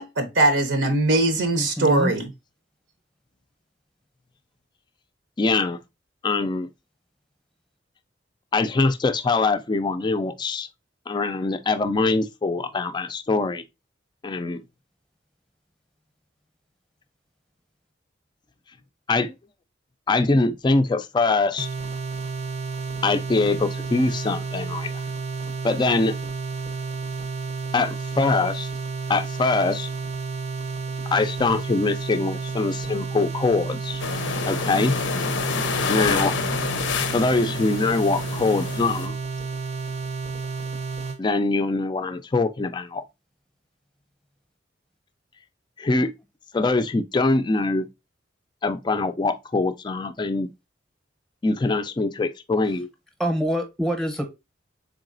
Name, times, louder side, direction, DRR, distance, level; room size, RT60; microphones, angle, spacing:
voice 1, 0.0-2.3, right 2 dB, 75° right, 0.7 m, -21 dB
voice 2, 1.5-2.1 53.2-54.2, equal, 5° left, 0.8 m, -25 dB
voice 3, 5.4-5.8 6.2-6.7 8.5-10.7 11.1-13.6 14.2-14.6 19.1-19.3 20.1-21.7 23.0-24.9 25.6-26.2 27.7-28.7 29.1-29.9 31.1-34.0 34.5-34.9 35.9-36.4 37.1-39.1 41.2-43.0 45.8-46.1 46.5-47.9 48.6-50.5 51.4-52.9, left 3 dB, 25° left, 0.3 m, -23 dB
sound 1, 21.6-41.2, right 5 dB, 35° right, 0.6 m, -31 dB
sound 2, 34.0-39.1, left 5 dB, 80° left, 0.5 m, -28 dB
3.9 x 3.6 x 2.4 m
head